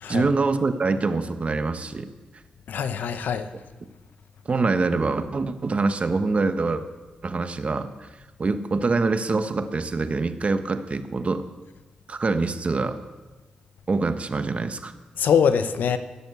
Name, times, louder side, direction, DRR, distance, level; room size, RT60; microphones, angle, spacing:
voice 1, 0.1-2.1 4.4-6.8 7.2-8.1 8.4-11.4 12.1-13.0 13.9-14.9, right 3 dB, 45° right, 1.2 m, -25 dB
voice 2, 2.7-3.5 15.2-16.0, left 7 dB, 80° left, 0.8 m, -23 dB
16.5 x 7.1 x 8.1 m
cardioid pair, 55°, 3 cm